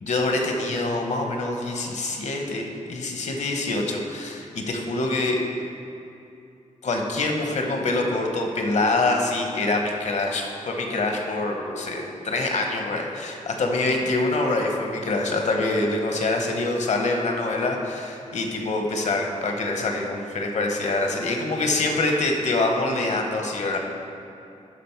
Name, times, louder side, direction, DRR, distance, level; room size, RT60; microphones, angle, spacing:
voice 1, 0.0-5.4 6.8-23.8, left 2 dB, 65° left, 2 dB, 1.0 m, -25 dB
11.0 x 4.2 x 4.6 m, 2.7 s
wide cardioid pair, 140°, 13 cm